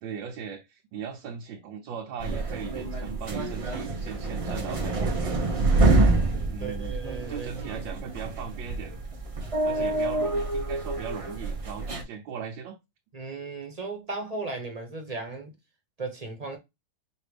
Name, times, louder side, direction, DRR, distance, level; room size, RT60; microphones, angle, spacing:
voice 1, 0.0-5.7 6.5-6.9 7.3-8.9 9.6-12.8, right 7 dB, 85° right, 1.5 m, -38 dB
sound 1, 2.2-12.0, right 2 dB, 45° right, 0.4 m, -27 dB
voice 2, 5.8-7.5 9.7-10.0 13.1-15.5 16.0-16.6, right 3 dB, 25° right, 0.9 m, -36 dB
5.7 x 2.7 x 3.3 m
omnidirectional pair, 2.0 m